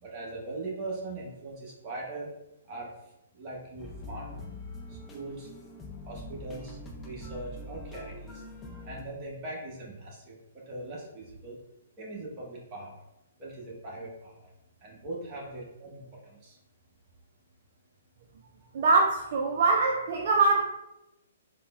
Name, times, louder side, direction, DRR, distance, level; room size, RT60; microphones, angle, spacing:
voice 1, 0.0-2.3 2.7-2.9 3.3-4.4 4.9-5.5 6.1-6.8 7.0-8.4 8.8-11.6 12.0-13.0 13.4-14.5 14.8-16.6, right 2 dB, 30° right, -4 dB, 1.0 m, -40 dB
sound 1, 3.8-9.0, left 1 dB, 15° left, 0.4 m, -43 dB
voice 2, 18.7-20.6, right 3 dB, 50° right, 0 dB, 0.3 m, -23 dB
3.5 x 2.1 x 2.3 m, 0.89 s
figure-of-eight pair, 125°, 0 cm